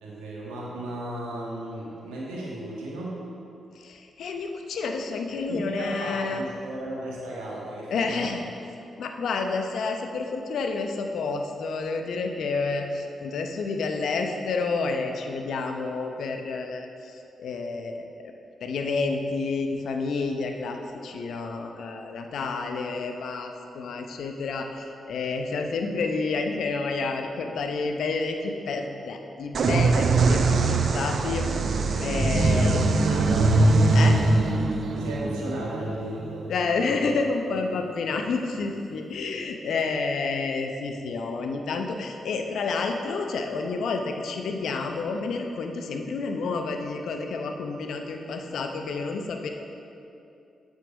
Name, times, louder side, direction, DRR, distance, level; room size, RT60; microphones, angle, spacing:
voice 1, 0.0-3.2 5.5-8.4 32.5-32.7 33.0-33.6 35.0-36.5, right 1 dB, 85° right, -5 dB, 1.7 m, -35 dB
voice 2, 3.7-6.5 7.9-8.4 9.0-18.3 18.6-31.5 32.0-33.2 33.9-34.2 36.5-49.5, left 4 dB, 70° left, 4 dB, 0.7 m, -29 dB
sound 1, 29.5-37.1, right 3 dB, 60° right, 0.6 m, -22 dB
7.5 x 6.6 x 5.2 m, 2.7 s
hypercardioid pair, 40°, 0 cm